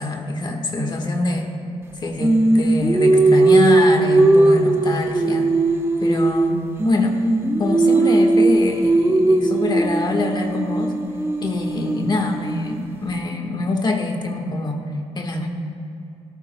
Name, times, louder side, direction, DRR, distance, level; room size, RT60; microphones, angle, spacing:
voice 1, 0.0-1.5 2.0-5.5 6.0-7.2 7.6-10.9 11.4-14.8 15.1-15.5, left 2 dB, 40° left, 3 dB, 1.4 m, -24 dB
Singing, 2.2-6.5 6.8-12.8, right 2 dB, 20° right, 1.0 m, -18 dB
17.5 x 13.5 x 2.2 m, 2.6 s
cardioid pair, 105°, 12 cm